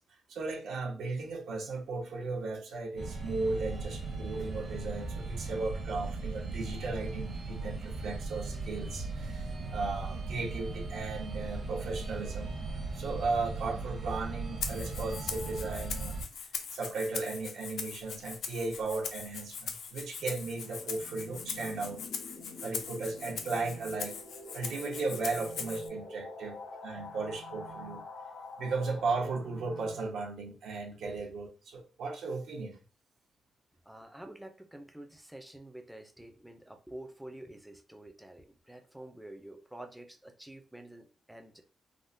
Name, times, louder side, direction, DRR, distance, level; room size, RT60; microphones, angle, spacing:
voice 1, 0.3-12.6 12.9-22.0 22.6-24.2 24.5-28.1 28.6-32.8, right 3 dB, 75° right, 0.8 m, -36 dB
sound 1, 3.0-16.2, right 3 dB, 45° right, 0.7 m, -38 dB
Rattle (instrument), 14.6-25.9, left 6 dB, 70° left, 0.4 m, -41 dB
sound 2, 20.6-30.1, left 2 dB, 85° left, 1.2 m, -47 dB
voice 2, 33.9-41.6, right 1 dB, 5° right, 0.4 m, -48 dB
3.5 x 2.0 x 2.5 m
wide cardioid pair, 175°, 0 cm